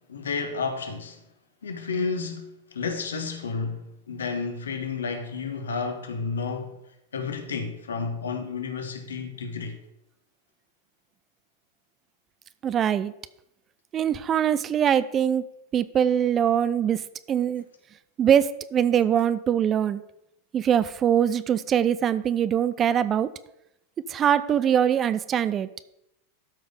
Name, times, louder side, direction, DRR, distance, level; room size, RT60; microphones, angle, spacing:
voice 1, 0.1-1.2 1.6-6.8 7.1-9.8, left 5 dB, 70° left, 1.4 m, -31 dB
voice 2, 12.6-13.1 13.9-15.4 15.7-17.0 17.3-17.6 18.2-20.0 20.5-23.3 24.1-25.7, right 9 dB, 25° right, 0.4 m, -22 dB
12.5 x 5.3 x 5.3 m
figure-of-eight pair, 90°, 0 cm